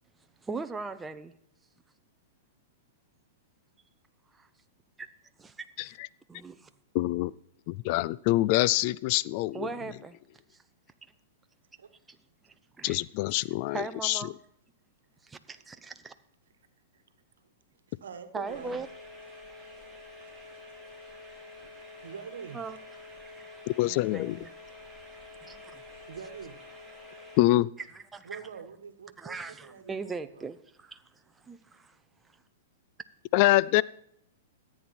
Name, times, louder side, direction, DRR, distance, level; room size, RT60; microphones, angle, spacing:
voice 1, 0.4-1.3 4.3-4.5 5.4-5.7 6.3-6.7 9.5-10.1 12.8-13.0 13.7-14.3 15.2-16.1 18.3-18.9 22.5-22.8 23.3-23.5 24.1-24.5 25.4-25.8 27.9-28.4 29.2-31.0 31.4-32.0, right 4 dB, 15° right, 0.7 m, -39 dB
voice 2, 6.9-7.3 7.7-9.7 12.8-14.2 23.8-24.4 27.4-27.7 33.3-33.8, left 18 dB, 50° left, 0.3 m, -25 dB
voice 3, 17.9-18.8 19.6-19.7 20.2-20.3 22.0-22.6 26.1-26.6 28.2-30.5, right 6 dB, 75° right, 1.3 m, -44 dB
sound 1, 18.4-27.4, left 2 dB, 10° left, 4.2 m, -48 dB
14.0 x 8.7 x 4.3 m
hypercardioid pair, 115°, 0 cm